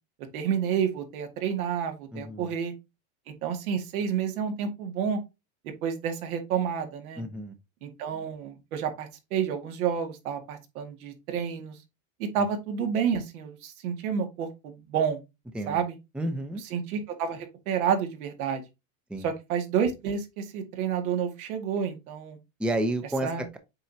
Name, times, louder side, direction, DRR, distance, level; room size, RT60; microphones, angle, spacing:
voice 1, 0.3-2.7 3.3-5.2 5.8-7.2 7.8-11.8 12.2-15.2 15.7-16.0 16.6-18.6 19.2-22.4 23.2-23.4, right 7 dB, 85° right, 2.1 m, -30 dB
voice 2, 2.1-2.5 7.2-7.5 15.5-15.8 16.2-16.6 19.1-19.3 22.6-23.6, right 1 dB, ahead, 0.6 m, -30 dB
7.7 x 4.7 x 2.8 m
supercardioid pair, 140°, 42 cm